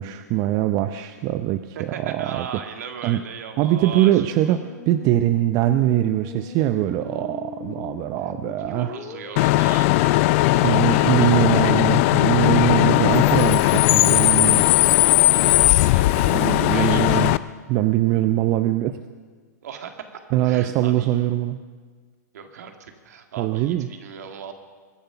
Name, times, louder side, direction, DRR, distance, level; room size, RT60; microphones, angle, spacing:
voice 1, 0.0-2.5 3.0-3.2 3.6-8.9 10.6-14.7 16.3-17.3 17.7-19.0 20.3-21.6 23.4-23.9, right 13 dB, 35° right, 10 dB, 0.6 m, -22 dB
voice 2, 1.8-4.6 8.7-11.8 15.3-17.3 19.6-20.0 20.4-21.3 22.3-24.5, right 7 dB, 65° right, 5 dB, 2.0 m, -38 dB
Musical instrument, 3.9-17.3, left 6 dB, 30° left, 2.2 m, -39 dB
Bus / Idling / Screech, 9.4-17.4, left 19 dB, 45° left, 0.5 m, -18 dB
22.5 x 10.5 x 5.8 m, 1.5 s
hypercardioid pair, 110°, 9 cm